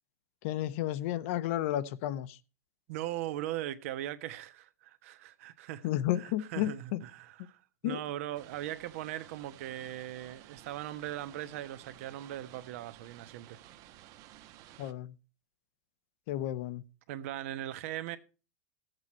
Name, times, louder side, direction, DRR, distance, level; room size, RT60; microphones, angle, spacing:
voice 1, 0.4-2.4 5.8-7.0 7.8-8.0 14.8-15.1 16.3-16.8, left 13 dB, 60° left, 0.9 m, -32 dB
voice 2, 2.9-5.9 6.2-13.6 17.1-18.2, right 13 dB, 65° right, 1.2 m, -39 dB
sound 1, 8.3-14.9, right 13 dB, 45° right, 1.0 m, -55 dB
13.5 x 8.1 x 4.4 m
hypercardioid pair, 125°, 8 cm